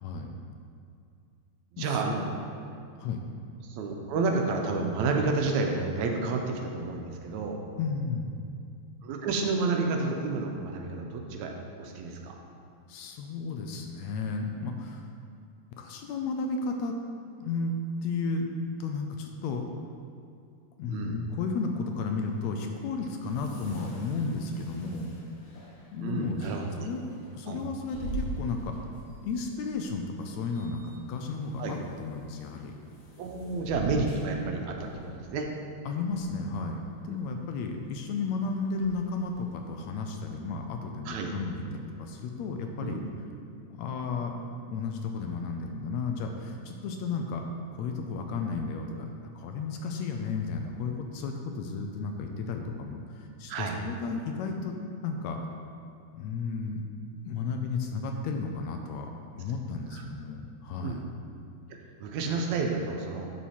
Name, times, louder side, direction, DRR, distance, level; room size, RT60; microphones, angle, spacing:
voice 1, 0.0-0.4 1.8-2.3 3.0-3.2 7.8-8.5 12.9-15.1 15.8-17.0 17.4-17.7 18.0-18.5 18.8-19.6 20.8-25.1 25.9-26.4 26.8-27.0 27.3-28.8 29.2-32.8 35.9-43.0 43.7-44.3 44.7-47.5 47.7-55.4 56.1-56.8 57.3-59.1 59.4-61.0, left 4 dB, 75° left, 3 dB, 1.8 m, -33 dB
voice 2, 1.7-2.3 3.6-7.6 9.0-12.4 20.9-21.2 26.0-26.9 27.5-27.6 31.6-31.8 33.2-35.5 37.1-37.2 41.1-41.3 42.8-43.1 53.5-53.8 59.9-60.0 60.8-61.0 62.0-63.3, right 3 dB, 80° right, 2 dB, 2.0 m, -30 dB
sound 1, 21.7-40.0, right 1 dB, 60° left, 2.5 m, -45 dB
11.0 x 4.8 x 4.3 m, 2.4 s
omnidirectional pair, 3.4 m